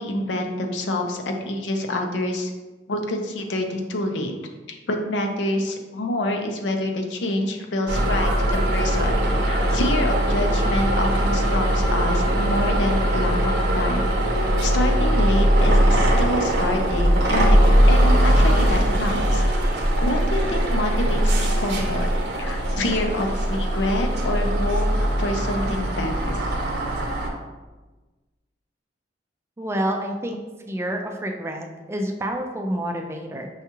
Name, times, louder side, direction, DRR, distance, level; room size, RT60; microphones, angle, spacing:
voice 1, 0.0-2.5 2.9-4.3 4.9-9.1 9.4-14.1 14.6-17.6 17.9-19.4 20.0-22.1 22.4-26.4, left 1 dB, 75° left, 4 dB, 0.5 m, -27 dB
sound 1, 7.9-27.3, equal, 65° right, 0.7 m, -20 dB
voice 2, 29.6-30.4 30.7-33.5, right 1 dB, 15° right, 3 dB, 0.3 m, -28 dB
5.5 x 2.3 x 2.9 m, 1.2 s
head